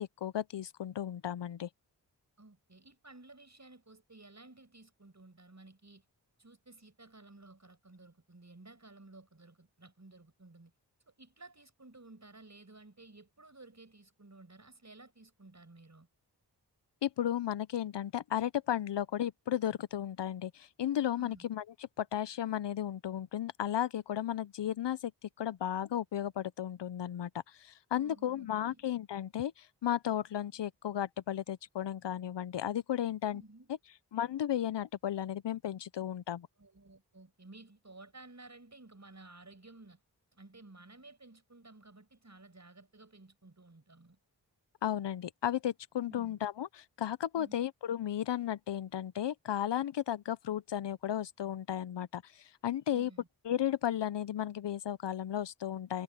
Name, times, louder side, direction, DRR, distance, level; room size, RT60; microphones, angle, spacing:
voice 1, 0.0-1.7 17.0-21.6 22.0-33.4 34.1-36.5 44.8-53.1 53.5-56.0, left 10 dB, 75° left, 0.7 m, -34 dB
voice 2, 2.4-6.0 6.4-10.7 11.1-16.1 21.2-21.5 27.9-28.8 33.3-33.7 36.6-40.0 40.3-44.2 46.1-46.4 47.3-47.7 52.9-53.3, right 2 dB, 40° right, 6.3 m, -55 dB
cardioid pair, 40°, 43 cm